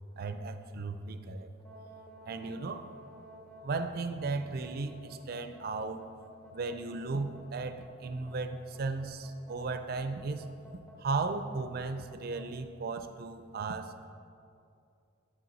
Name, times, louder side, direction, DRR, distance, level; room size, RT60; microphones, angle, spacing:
voice 1, 0.2-1.5 2.3-2.9 3.6-6.0 6.5-10.4 11.0-13.9, right 3 dB, 50° right, 9 dB, 0.4 m, -35 dB
sound 1, 1.6-12.5, equal, 5° left, 0.6 m, -53 dB
9.3 x 6.2 x 4.0 m, 2.5 s
head